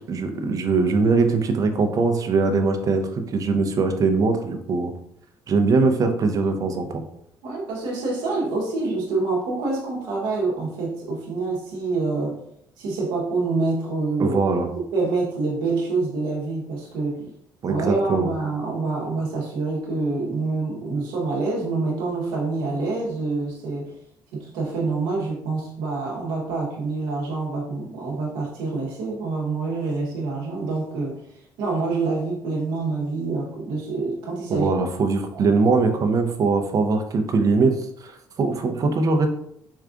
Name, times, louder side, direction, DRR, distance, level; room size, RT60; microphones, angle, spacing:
voice 1, 0.1-4.9 5.5-7.0 14.2-14.7 17.6-18.3 34.5-38.1 38.4-39.3, right 4 dB, 45° right, 5 dB, 0.6 m, -21 dB
voice 2, 7.4-12.4 12.8-14.4 14.8-17.2 17.7-24.0 24.3-31.3 31.6-34.7 35.3-35.5, right 3 dB, 85° right, -3 dB, 0.8 m, -26 dB
4.5 x 2.4 x 2.4 m, 0.72 s
supercardioid pair, 85°, 8 cm